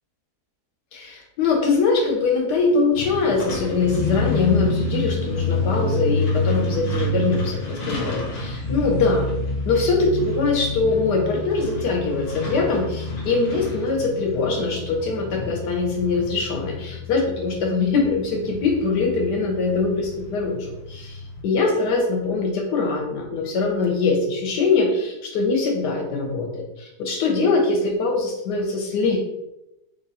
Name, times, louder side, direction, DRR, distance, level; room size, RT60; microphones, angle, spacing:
voice 1, 0.9-9.3 9.6-29.2, left 4 dB, 90° left, 1 dB, 1.5 m, -22 dB
Truck, 2.9-21.4, left 2 dB, 55° left, 1.1 m, -28 dB
3.6 x 2.7 x 4.1 m, 0.88 s
omnidirectional pair, 1.7 m